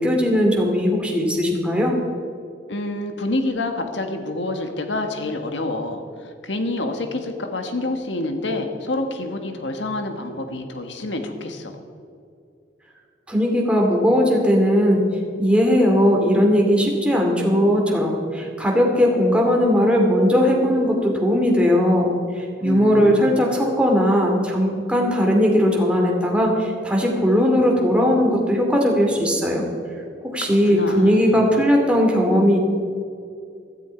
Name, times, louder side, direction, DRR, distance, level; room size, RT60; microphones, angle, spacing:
voice 1, 0.0-2.0 13.3-15.1 15.4-29.6 30.3-32.6, equal, 5° right, -1 dB, 2.4 m, -18 dB
voice 2, 2.7-6.0 6.4-11.7 22.6-23.3 30.4-31.4, left 2 dB, 80° left, 5 dB, 1.7 m, -27 dB
16.0 x 14.0 x 4.6 m, 2.4 s
head